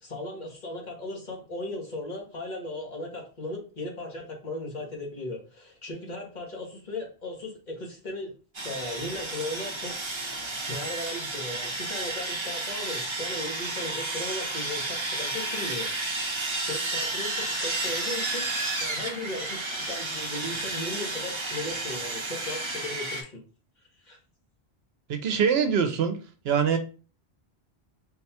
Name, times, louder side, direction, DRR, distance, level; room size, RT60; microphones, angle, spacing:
voice 1, 0.0-8.3 8.6-16.4 16.7-18.5 18.8-19.6 19.9-23.4 24.0-24.2, left 1 dB, 45° left, 1.1 m, -37 dB
Sawing, 8.5-23.2, right 2 dB, 30° right, 0.7 m, -32 dB
voice 2, 25.1-26.2 26.4-26.8, right 7 dB, 75° right, 0.8 m, -23 dB
3.9 x 2.3 x 4.1 m
omnidirectional pair, 1.1 m